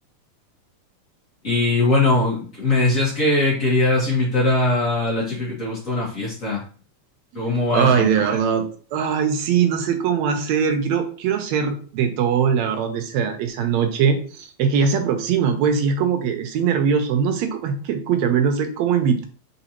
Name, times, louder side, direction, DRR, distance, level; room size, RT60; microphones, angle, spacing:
voice 1, 1.4-6.6 7.3-8.1, left 2 dB, 75° left, -6 dB, 0.7 m, -21 dB
voice 2, 7.7-8.7 8.9-19.3, right 7 dB, 80° right, 6 dB, 1.7 m, -21 dB
4.1 x 3.9 x 2.8 m, 0.42 s
omnidirectional pair, 3.4 m